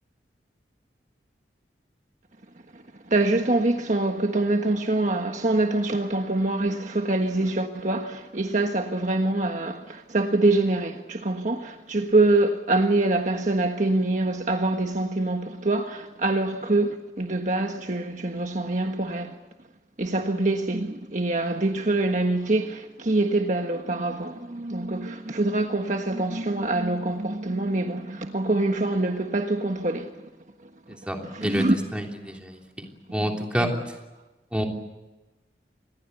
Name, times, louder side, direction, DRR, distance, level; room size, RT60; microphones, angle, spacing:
voice 1, 2.7-19.3 20.0-30.1 30.9-31.8 33.1-33.8, right 2 dB, 45° right, 1.5 m, -25 dB
voice 2, 31.9-33.7 34.5-34.6, equal, 5° right, 3.2 m, -28 dB
27.0 x 20.5 x 8.2 m
head